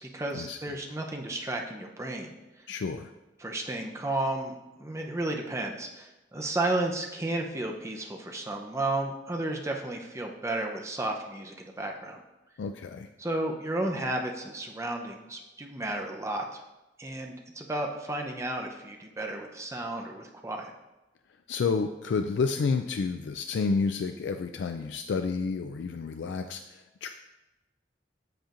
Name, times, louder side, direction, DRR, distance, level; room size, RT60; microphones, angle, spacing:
voice 1, 0.0-2.3 3.4-12.2 13.2-16.6 17.0-20.7, right 2 dB, 15° right, 2 dB, 0.6 m, -33 dB
voice 2, 2.7-3.1 12.6-13.1 21.5-27.1, left 4 dB, 80° left, 7 dB, 0.3 m, -30 dB
7.9 x 7.0 x 2.5 m, 1.0 s
head